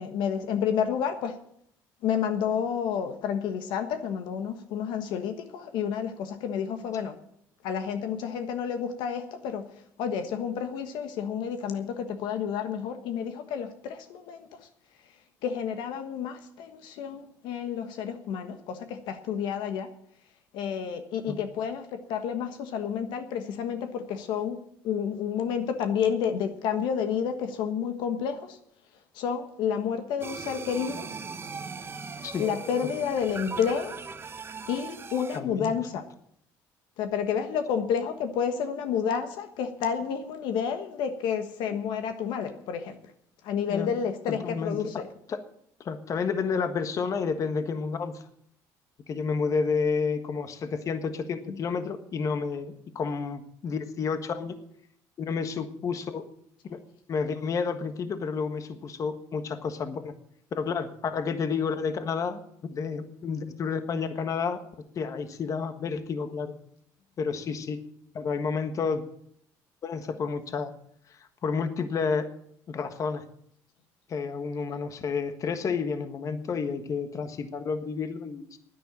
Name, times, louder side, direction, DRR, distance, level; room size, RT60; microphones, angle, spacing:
voice 1, 0.0-1.4 2.0-7.2 7.6-9.7 10.0-14.7 15.4-19.9 20.5-24.6 24.8-28.6 29.1-31.1 32.4-34.0 34.7-36.1 37.0-43.0 43.4-45.0 51.5-51.6, left 7 dB, 75° left, 7 dB, 1.3 m, -30 dB
sound 1, 30.2-35.4, right 5 dB, 30° right, 1.2 m, -39 dB
voice 2, 35.3-35.7 43.6-43.9 44.3-45.4 45.8-48.2 49.1-54.6 55.2-56.3 56.7-56.8 57.1-60.1 60.5-64.6 64.9-66.5 67.2-67.8 68.1-69.0 69.8-70.7 71.1-72.3 72.7-73.2 74.1-78.6, left 5 dB, 45° left, 9 dB, 1.4 m, -30 dB
10.0 x 9.8 x 8.7 m, 0.69 s
cardioid pair, 100°, 8 cm